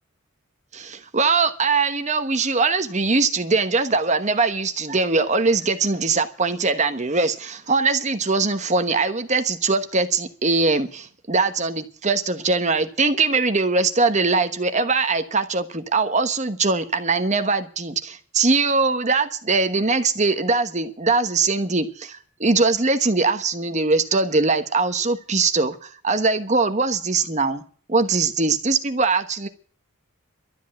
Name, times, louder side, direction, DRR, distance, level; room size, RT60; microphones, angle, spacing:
voice 1, 0.7-27.6 27.9-29.5, right 3 dB, 35° right, 1.1 m, -21 dB
12.5 x 8.3 x 8.8 m
head